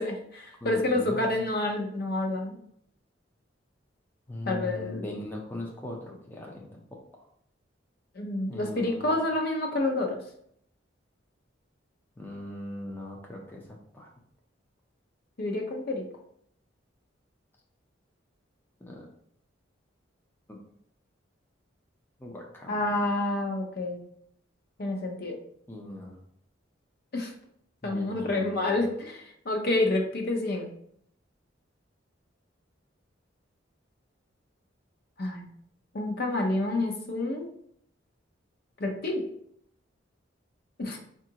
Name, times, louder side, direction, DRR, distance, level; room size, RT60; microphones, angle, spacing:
voice 1, 0.0-2.6 4.5-5.1 8.2-10.2 15.4-16.0 22.7-24.0 24.8-25.4 27.1-27.3 27.8-30.7 35.2-35.5 35.9-37.5 38.8-39.2 40.8-41.0, left 2 dB, 55° left, 2 dB, 0.6 m, -28 dB
voice 2, 0.6-1.5 4.3-6.8 8.5-9.2 12.2-13.6 13.9-14.1 18.9-19.1 20.5-20.6 22.2-22.9 25.7-26.2 27.8-28.8, left 1 dB, 10° left, -2 dB, 0.5 m, -40 dB
4.7 x 2.4 x 2.8 m, 0.67 s
head